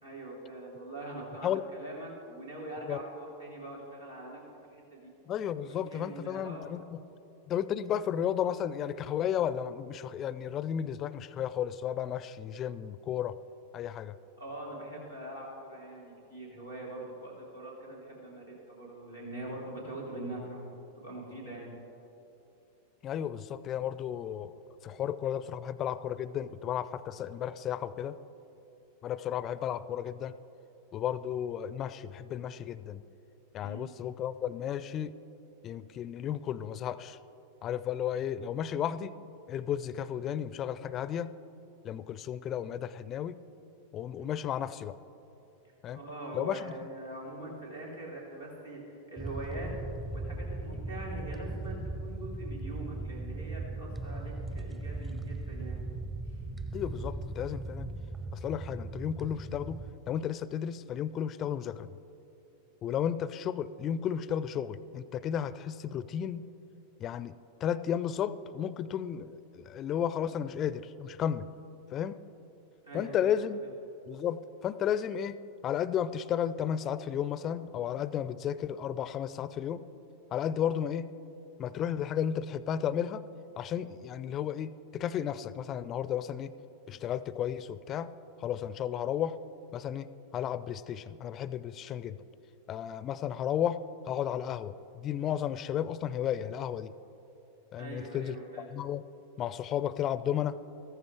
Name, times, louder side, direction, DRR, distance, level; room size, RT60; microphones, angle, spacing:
voice 1, 0.0-4.4 4.7-5.1 5.6-6.7 14.4-20.7 20.9-21.7 33.6-33.9 44.2-44.3 45.9-49.7 50.1-55.9 56.2-56.4 72.8-73.7 97.8-98.7, right 1 dB, 85° right, -5 dB, 3.4 m, -43 dB
voice 2, 5.3-7.0 7.5-13.3 13.7-14.1 23.0-24.5 24.8-28.2 29.0-30.4 30.9-33.0 33.5-35.1 35.6-37.2 37.6-39.1 39.5-41.3 41.8-43.4 43.9-44.9 45.8-46.0 46.3-46.7 56.7-57.9 58.3-59.8 60.1-61.9 62.8-66.4 67.0-67.3 67.6-71.5 71.9-72.2 72.9-73.6 74.1-75.4 75.6-79.8 80.3-81.1 81.6-83.2 83.6-86.5 86.9-88.1 88.4-89.3 89.7-90.1 90.3-92.2 92.7-93.8 94.1-96.9 97.7-99.0 99.4-100.6, left 9 dB, 30° left, 16 dB, 0.4 m, -33 dB
sound 1, 49.2-59.9, right 2 dB, 15° right, 0.6 m, -38 dB
14.5 x 14.5 x 3.4 m, 2.9 s
figure-of-eight pair, 90°, 0 cm